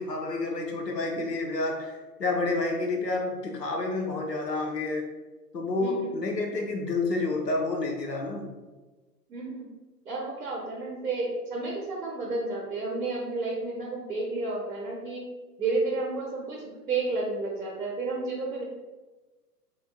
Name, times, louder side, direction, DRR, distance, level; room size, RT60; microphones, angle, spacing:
voice 1, 0.0-5.1 5.5-8.5, left 2 dB, 85° left, 1 dB, 1.0 m, -29 dB
voice 2, 5.8-6.1 9.3-9.7 10.0-15.2 15.6-18.6, right 3 dB, 85° right, -3 dB, 1.1 m, -31 dB
4.3 x 3.8 x 2.3 m, 1.2 s
figure-of-eight pair, 110°, 48 cm